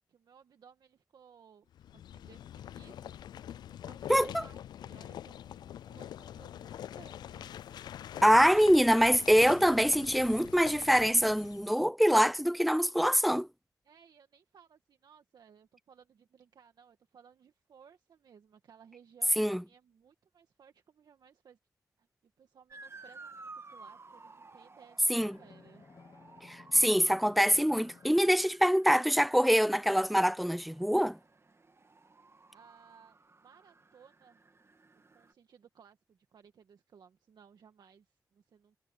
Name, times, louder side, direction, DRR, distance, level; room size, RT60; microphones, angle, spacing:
voice 1, 0.1-3.2 3.7-7.6 13.8-21.6 22.0-25.9 32.5-34.4 34.9-38.8, right 7 dB, 80° right, 1.9 m, -60 dB
sound 1, 1.7-11.7, left 10 dB, 90° left, 0.3 m, -45 dB
voice 2, 4.1-4.4 8.2-13.5 19.4-19.6 25.1-25.4 26.4-31.2, equal, ahead, 0.6 m, -25 dB
Motor vehicle (road) / Siren, 22.7-35.3, right 3 dB, 40° right, 2.2 m, -55 dB
Drum, 25.2-28.9, left 5 dB, 60° left, 3.4 m, -57 dB
cardioid pair, 50°, 7 cm